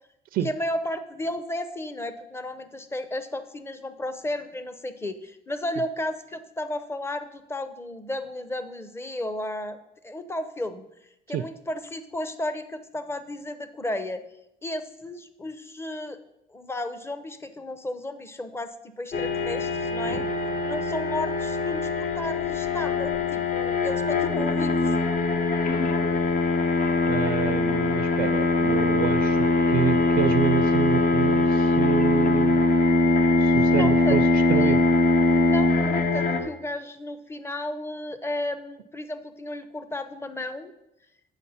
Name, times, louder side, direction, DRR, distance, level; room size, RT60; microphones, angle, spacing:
voice 1, 0.4-9.8 10.0-10.9 11.3-14.2 14.6-16.2 16.5-25.0 33.7-34.8 35.5-40.7, left 1 dB, 15° left, 10 dB, 0.7 m, -33 dB
sound 1, 19.1-36.4, left 3 dB, 50° left, 1.0 m, -22 dB
voice 2, 27.1-32.6 33.4-34.8, right 11 dB, 65° right, 10 dB, 0.4 m, -28 dB
8.1 x 6.4 x 5.6 m, 0.85 s
cardioid pair, 110°, 17 cm